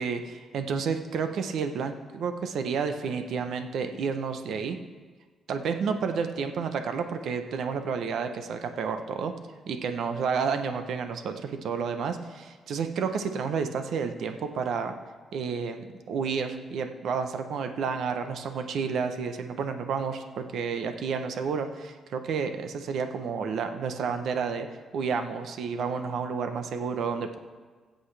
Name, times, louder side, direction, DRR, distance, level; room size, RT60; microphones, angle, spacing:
voice 1, 0.0-4.8 5.5-9.3 9.7-14.9 15.3-24.7 24.9-27.4, right 5 dB, 75° right, 7 dB, 0.9 m, -30 dB
21.5 x 7.9 x 3.4 m, 1.4 s
cardioid pair, 85°, 0 cm